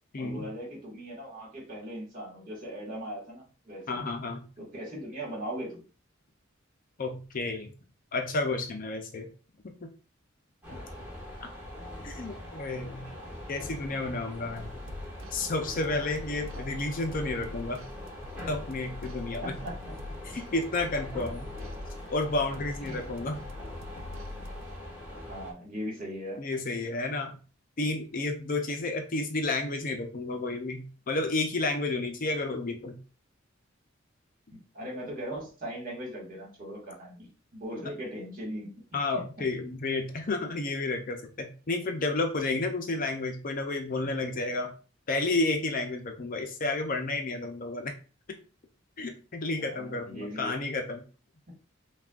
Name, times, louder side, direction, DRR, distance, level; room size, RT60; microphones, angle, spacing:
voice 1, 0.2-4.0 4.6-5.8 10.7-10.8 16.5-16.8 19.4-19.9 21.1-21.3 22.8-23.0 25.3-26.4 34.5-38.7 39.1-39.3 49.6-50.6, equal, 45° right, -3 dB, 1.9 m, -39 dB
voice 2, 3.9-4.5 7.0-7.7 8.1-9.3 9.8-9.9 11.4-11.5 12.0-13.1 13.5-14.7 15.3-17.8 18.5-19.6 20.2-21.5 22.1-23.4 26.4-27.3 27.8-33.0 38.9-44.7 45.1-47.9 49.0-51.0, left 2 dB, 45° left, 5 dB, 0.6 m, -31 dB
sound 1, 10.6-25.5, left 1 dB, 10° right, 1.5 m, -43 dB
sound 2, 14.6-24.8, left 2 dB, 75° right, 0.5 m, -44 dB
5.8 x 2.4 x 2.4 m, 0.36 s
head